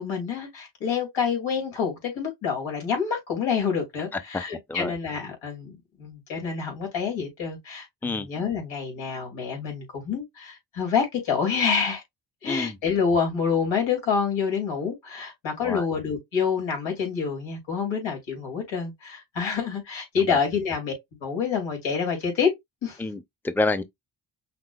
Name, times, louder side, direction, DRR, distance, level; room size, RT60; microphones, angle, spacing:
voice 1, 0.0-12.0 12.4-20.9 21.2-22.5 22.8-23.0, left 6 dB, 90° left, 2.7 m, -27 dB
voice 2, 12.5-12.8 15.6-15.8 20.3-20.4 23.0-23.8, left 2 dB, 5° left, 0.6 m, -28 dB
5.9 x 2.7 x 2.3 m
cardioid pair, 55°, 45 cm